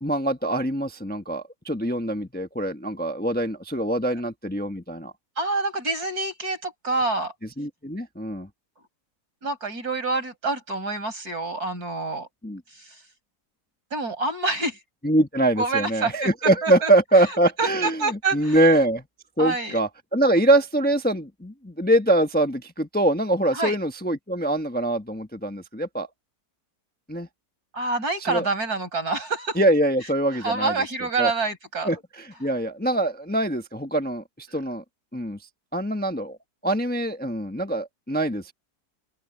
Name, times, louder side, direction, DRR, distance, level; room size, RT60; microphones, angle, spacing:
voice 1, 0.0-5.1 7.6-8.5 12.4-12.6 15.0-19.0 19.4-26.1 27.1-27.3 28.2-28.5 29.6-30.8 31.2-31.3 31.8-34.8 35.1-35.4 35.7-36.4 36.6-38.5, right 1 dB, 5° left, 1.0 m, -23 dB
voice 2, 5.4-7.3 9.4-12.3 12.7-13.0 13.9-14.8 15.6-16.3 16.6-16.9 17.6-18.6 19.4-19.8 23.5-23.8 27.7-29.6 30.4-31.9, right 3 dB, 70° right, 6.3 m, -27 dB
open air
omnidirectional pair, 1.7 m